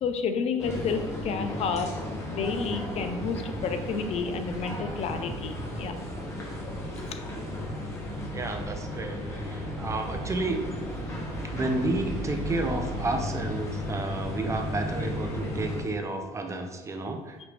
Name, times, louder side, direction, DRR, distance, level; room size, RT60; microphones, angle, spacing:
voice 1, 0.0-1.9 2.3-6.0 7.0-7.1, left 5 dB, 55° left, 8 dB, 0.4 m, -30 dB
sound 1, 0.6-15.8, left 1 dB, 20° left, 1.2 m, -34 dB
voice 2, 8.3-10.6 11.5-17.4, right 2 dB, 25° right, 5 dB, 0.5 m, -31 dB
5.1 x 2.9 x 3.2 m, 1.3 s
cardioid pair, 115°, 13 cm